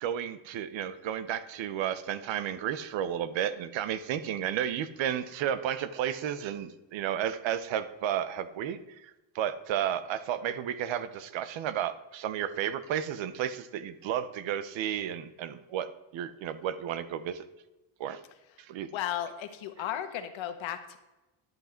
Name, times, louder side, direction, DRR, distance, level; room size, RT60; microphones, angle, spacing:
voice 1, 0.0-15.9 16.1-17.4 18.0-18.2 18.6-18.9, right 10 dB, 65° right, 13 dB, 0.9 m, -32 dB
voice 2, 18.9-21.0, left 11 dB, 70° left, 8 dB, 1.3 m, -35 dB
11.0 x 8.3 x 4.4 m, 1.0 s
cardioid pair, 150°, 49 cm